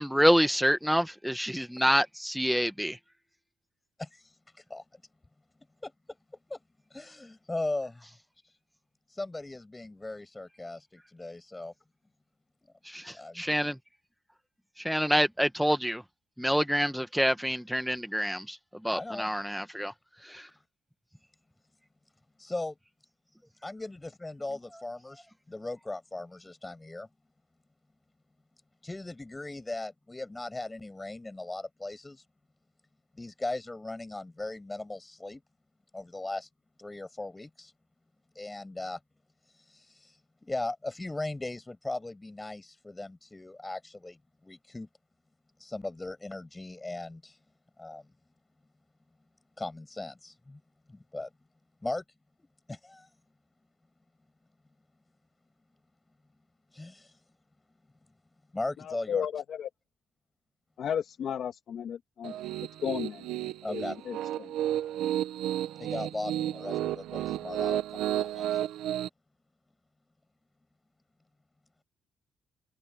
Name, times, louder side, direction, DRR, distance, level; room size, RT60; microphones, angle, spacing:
voice 1, 0.0-3.0 13.4-13.7 14.8-16.0 16.4-18.6 18.8-19.9 20.3-20.5, equal, ahead, 1.1 m, -26 dB
voice 2, 4.0-5.0 5.8-5.9 6.5-6.6 6.9-8.1 8.4-8.5 9.1-11.7 13.2-13.3 18.9-19.3 22.4-22.8 23.6-27.1 28.8-32.2 33.2-35.4 35.9-36.5 36.8-37.7 38.3-39.0 39.5-44.9 45.6-47.4 47.8-48.1 49.6-50.6 50.9-51.3 51.8-52.0 52.7-53.1 56.7-57.2 58.5-59.3 63.6-64.0 65.8-68.6, left 2 dB, 15° left, 7.1 m, -38 dB
voice 3, 58.8-59.7 60.8-62.3 62.8-63.3 63.7-64.6, left 8 dB, 65° left, 2.3 m, -34 dB
Piano, 62.2-69.1, right 12 dB, 90° right, 1.2 m, -32 dB
open air
cardioid pair, 90°, 0 cm